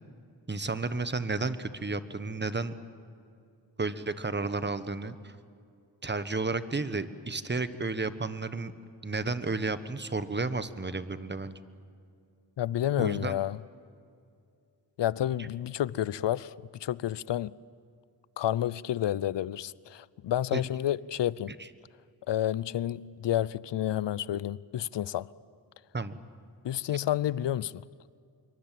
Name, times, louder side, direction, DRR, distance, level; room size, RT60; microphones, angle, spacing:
voice 1, 0.5-2.7 3.8-5.3 6.0-8.7 9.0-11.6 13.0-13.4 20.5-20.6 21.6-21.7 25.9-26.2, right 3 dB, 25° right, 1.3 m, -32 dB
voice 2, 12.6-13.6 15.0-16.5 16.8-17.5 18.4-21.6 22.3-25.3 26.6-27.8, left 12 dB, 85° left, 0.6 m, -30 dB
26.5 x 23.5 x 7.7 m
wide cardioid pair, 85°, 42 cm